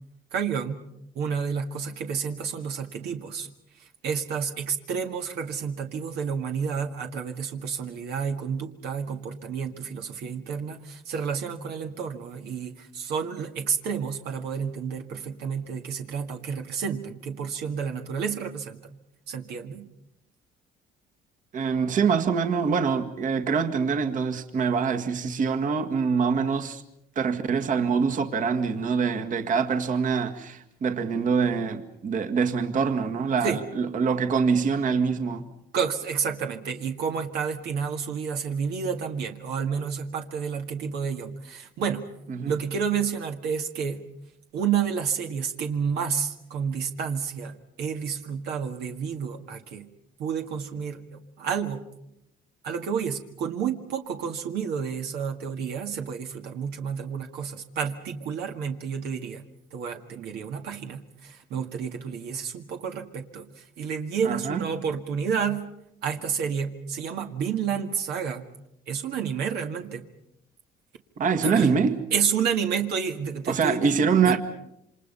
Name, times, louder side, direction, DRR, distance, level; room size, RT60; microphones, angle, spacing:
voice 1, 0.3-0.9 1.2-3.5 4.0-18.8 19.3-19.9 33.4-33.6 35.7-42.1 42.5-44.1 44.5-49.9 50.2-51.8 52.6-59.5 59.7-63.5 63.8-65.7 66.0-68.5 68.9-70.1 71.4-71.7 72.1-73.9 74.3-74.4, right 6 dB, 75° right, 1.9 m, -30 dB
voice 2, 21.5-26.8 27.2-35.5 42.3-42.5 64.2-64.7 71.2-72.0 73.5-74.4, right 5 dB, 50° right, 1.9 m, -25 dB
28.0 x 26.0 x 5.6 m
cardioid pair, 110°, 17 cm